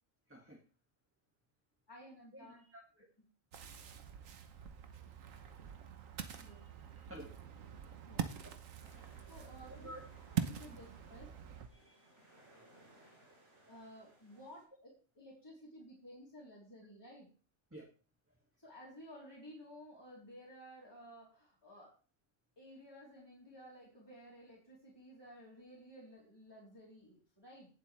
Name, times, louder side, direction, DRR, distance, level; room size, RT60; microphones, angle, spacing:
voice 1, 0.3-0.6 2.3-3.1 6.3-6.7 7.1-7.3 8.4-8.5 8.8-9.0 9.8-10.0 11.7-12.1 17.7-17.9, equal, 10° right, -1 dB, 1.9 m, -53 dB
voice 2, 1.9-2.6 2.9-3.0 6.3-6.7 8.0-8.2 9.3-9.9 10.3-11.3 13.7-14.9 15.2-17.3 18.6-21.9 22.6-27.7, equal, 20° left, -6 dB, 3.5 m, -55 dB
Ocean, 3.5-11.7, right 8 dB, 85° right, 1.4 m, -44 dB
sound 1, 8.8-14.6, right 1 dB, 70° right, 5.8 m, -64 dB
17.5 x 7.5 x 3.3 m, 0.39 s
omnidirectional pair, 1.3 m